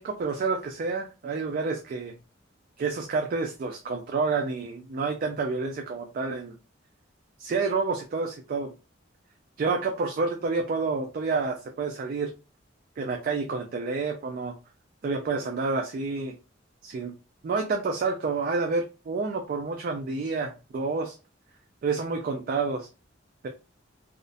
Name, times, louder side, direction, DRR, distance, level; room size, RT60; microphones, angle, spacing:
voice 1, 0.0-2.1 2.8-6.5 7.4-8.7 9.6-12.3 13.0-14.6 15.0-16.4 16.8-17.1 17.4-21.2 21.8-22.9, right 4 dB, 45° right, 3 dB, 0.3 m, -29 dB
2.4 x 2.0 x 2.5 m, 0.31 s
head